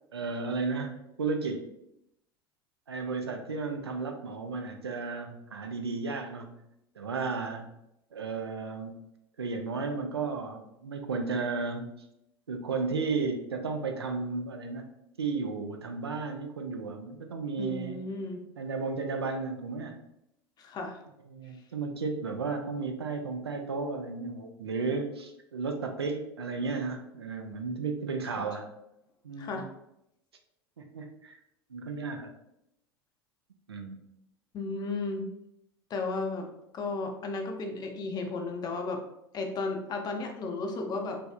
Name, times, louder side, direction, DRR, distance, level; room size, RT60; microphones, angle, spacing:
voice 1, 0.1-1.7 2.9-6.6 7.0-7.7 8.1-8.9 9.4-11.9 12.5-14.9 15.2-18.0 18.6-20.0 21.3-28.7 29.2-29.7 30.8-31.4 31.7-32.3 33.7-34.0, right 4 dB, 85° right, 5 dB, 0.4 m, -34 dB
voice 2, 17.6-18.4 20.6-21.0 28.2-28.4 29.4-29.7 34.5-35.3 35.9-36.5 36.7-39.0 39.3-41.2, left 3 dB, 30° left, 4 dB, 0.5 m, -34 dB
3.1 x 2.6 x 2.2 m, 0.83 s
figure-of-eight pair, 75°, 13 cm